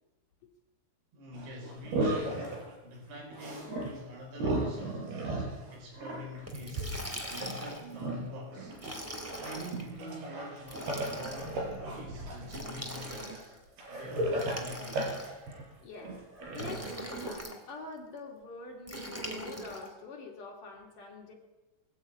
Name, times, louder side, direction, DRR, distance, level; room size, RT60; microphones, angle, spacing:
voice 1, 1.1-2.6 2.8-7.0 7.3-8.8 9.3-11.6 11.9-13.6 13.9-15.1, left 1 dB, 80° right, 1 dB, 7.0 m, -45 dB
sound 1, 1.3-2.7 3.3-4.0 4.3-8.9 9.2-17.3, right 2 dB, 60° right, 6.8 m, -36 dB
Liquid, 6.5-7.9 8.7-9.8 10.6-11.5 12.5-13.6 14.3-15.5 16.5-17.6 18.9-19.9, equal, 5° right, 2.3 m, -41 dB
voice 2, 15.8-16.2 16.5-21.3, left 3 dB, 50° left, 1 dB, 3.7 m, -45 dB
21.5 x 16.0 x 8.9 m, 1.1 s
omnidirectional pair, 5.2 m